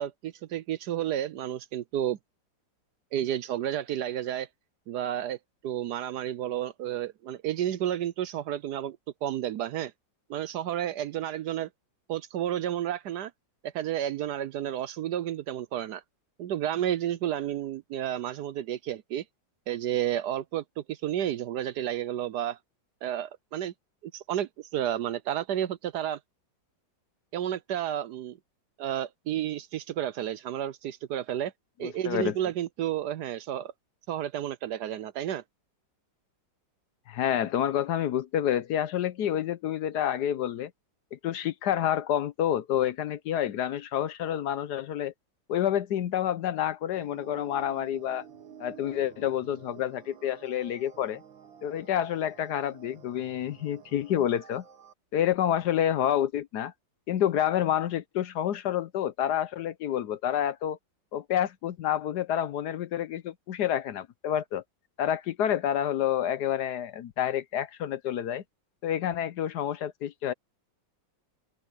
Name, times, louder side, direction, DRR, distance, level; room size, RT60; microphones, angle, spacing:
voice 1, 0.0-2.2 3.1-4.5 4.9-5.4 5.6-9.9 10.3-11.7 12.1-13.3 13.6-16.0 16.4-19.2 19.7-22.6 23.0-23.7 24.0-26.2 27.3-28.4 28.8-31.5 31.8-33.7 34.1-35.4, right 11 dB, 70° right, 1.1 m, -31 dB
voice 2, 31.8-32.3 37.1-40.7 41.1-45.1 45.5-48.2 48.6-51.2 51.6-54.6 55.1-56.7 57.1-60.8 61.1-64.6 65.0-68.4 68.8-70.3, left 10 dB, 65° left, 1.2 m, -28 dB
sound 1, 46.9-54.9, right 8 dB, 85° right, 2.2 m, -51 dB
open air
omnidirectional pair, 2.1 m